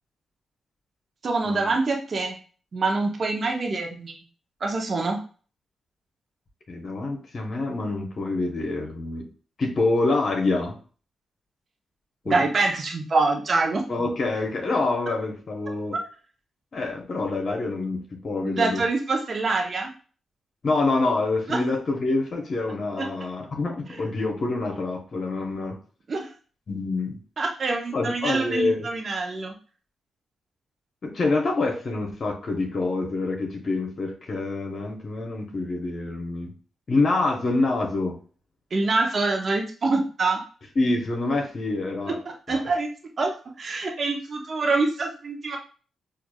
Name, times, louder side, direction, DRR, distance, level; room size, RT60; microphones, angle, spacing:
voice 1, 1.2-2.4 2.7-4.2 4.6-5.2 12.3-13.8 15.9-16.0 18.4-19.9 21.5-21.6 23.0-23.1 26.1-26.3 27.4-29.6 38.7-40.4 42.1-42.2 42.5-42.9 43.2-45.6, right 3 dB, 50° right, 1 dB, 0.6 m, -25 dB
voice 2, 6.7-9.3 9.6-10.8 12.2-12.4 13.9-16.0 16.7-18.8 20.6-25.8 26.7-27.2 27.9-28.9 31.0-36.5 36.9-38.2 40.8-42.2 42.5-42.6, left 3 dB, 50° left, 1 dB, 0.7 m, -26 dB
4.6 x 2.4 x 2.2 m, 0.39 s
supercardioid pair, 55°, 0 cm